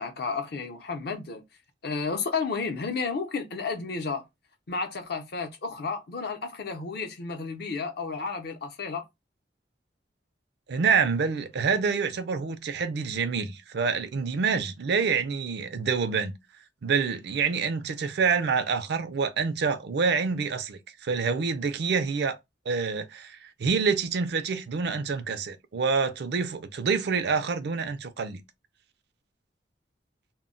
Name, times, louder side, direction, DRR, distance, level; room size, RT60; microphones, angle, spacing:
voice 1, 0.0-1.4 1.8-4.2 4.7-9.0, left 4 dB, 65° left, 0.6 m, -32 dB
voice 2, 10.7-16.3 16.8-22.4 22.7-28.4, right 5 dB, 65° right, 0.4 m, -27 dB
2.2 x 2.0 x 3.7 m
head